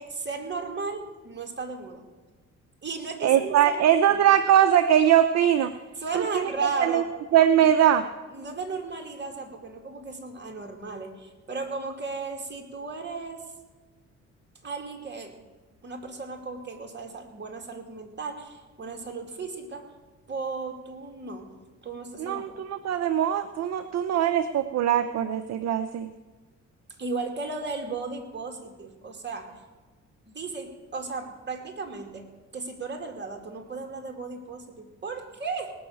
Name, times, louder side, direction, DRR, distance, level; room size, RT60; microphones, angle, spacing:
voice 1, 0.0-2.0 2.8-4.2 6.0-7.1 8.3-13.4 14.6-15.4 15.8-19.9 20.3-21.6 21.8-22.6 27.0-29.5 30.3-35.7, right 4 dB, 35° right, 4 dB, 2.6 m, -35 dB
voice 2, 3.2-5.7 6.1-6.5 6.8-7.0 7.3-8.1 22.2-26.1, right 10 dB, 60° right, 10 dB, 0.7 m, -21 dB
18.5 x 6.3 x 8.6 m, 1.3 s
cardioid pair, 90°, 30 cm